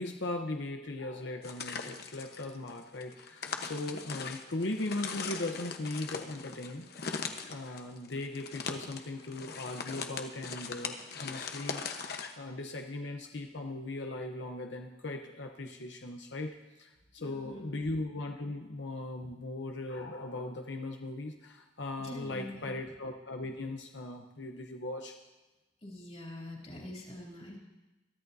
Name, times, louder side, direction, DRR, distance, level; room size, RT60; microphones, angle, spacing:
voice 1, 0.0-7.2 7.5-12.1 12.4-25.1, left 2 dB, 85° left, 3 dB, 0.9 m, -38 dB
sound 1, 1.4-12.3, left 5 dB, 60° left, 1.0 m, -40 dB
voice 2, 17.2-17.8 22.0-22.8 25.8-27.6, left 1 dB, 40° left, -2 dB, 3.0 m, -45 dB
22.5 x 13.0 x 2.7 m, 1.1 s
head